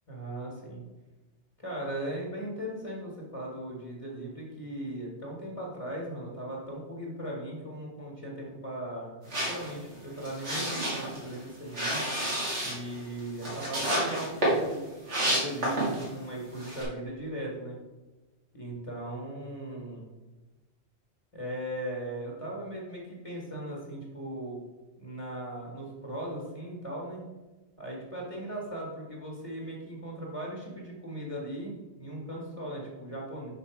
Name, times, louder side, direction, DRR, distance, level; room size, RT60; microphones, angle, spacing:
voice 1, 0.1-0.8 1.6-12.0 12.6-14.9 15.2-17.8 18.5-20.0 21.3-24.6 25.0-27.2 27.8-33.5, right 1 dB, 30° left, -3 dB, 1.6 m, -38 dB
sound 1, 9.3-16.2 16.5-16.8, right 1 dB, 85° right, 2.4 m, -30 dB
5.8 x 5.5 x 4.6 m, 1.1 s
omnidirectional pair, 1.1 m